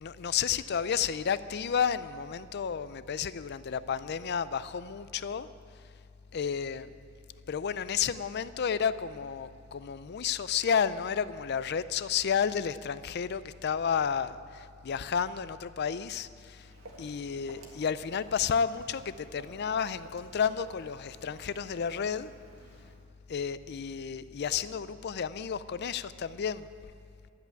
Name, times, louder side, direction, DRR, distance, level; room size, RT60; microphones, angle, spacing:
voice 1, 0.0-5.5 6.3-6.9 7.5-16.7 17.0-22.3 23.3-26.7, left 7 dB, 55° left, 15 dB, 0.4 m, -31 dB
Walk footsteps, 16.4-23.0, right 2 dB, 80° right, 2.0 m, -54 dB
12.5 x 8.2 x 9.0 m, 2.5 s
head